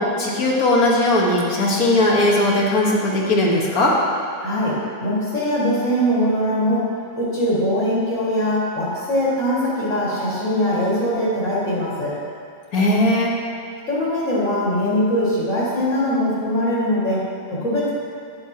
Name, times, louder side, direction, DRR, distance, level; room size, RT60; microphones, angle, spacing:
voice 1, 0.0-3.9 12.7-13.3, left 1 dB, 75° left, -3 dB, 1.8 m, -18 dB
voice 2, 4.4-6.9 7.2-12.1 13.9-17.9, equal, 60° left, -8 dB, 2.4 m, -21 dB
10.5 x 9.6 x 2.9 m, 2.3 s
omnidirectional pair, 1.5 m